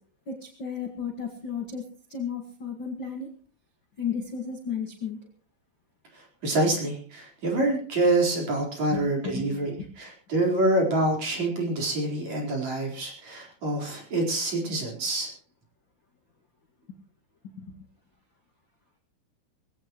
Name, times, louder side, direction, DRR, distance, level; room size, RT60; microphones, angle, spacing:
voice 1, 0.3-1.8 2.1-3.3 4.0-5.2 8.9-9.9 10.5-10.6 17.6-17.7, left 6 dB, 55° left, 2 dB, 1.3 m, -34 dB
voice 2, 6.1-15.3, right 2 dB, 35° right, 0 dB, 5.2 m, -26 dB
21.5 x 16.5 x 3.1 m, 0.43 s
omnidirectional pair, 5.5 m